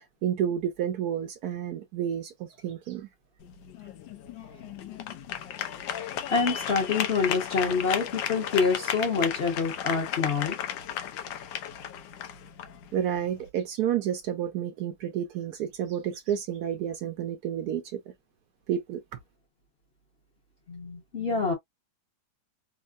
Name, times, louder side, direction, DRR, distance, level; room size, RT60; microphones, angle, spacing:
voice 1, 0.0-3.1 12.9-18.1 18.7-19.2, right 9 dB, 70° right, 1.0 m, -30 dB
sound 1, 3.4-13.5, left 9 dB, 80° left, 1.3 m, -34 dB
voice 2, 6.3-10.6 20.7-21.5, left 4 dB, 45° left, 0.9 m, -26 dB
3.6 x 2.1 x 2.4 m
omnidirectional pair, 1.9 m